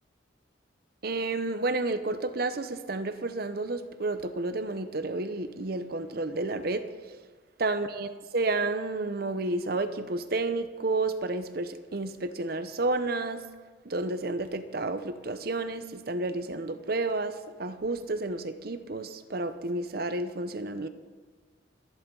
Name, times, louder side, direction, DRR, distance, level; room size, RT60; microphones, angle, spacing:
voice 1, 1.0-6.9 7.6-13.4 13.8-20.9, right 2 dB, 55° right, 10 dB, 0.8 m, -31 dB
27.0 x 11.0 x 3.9 m, 1.4 s
head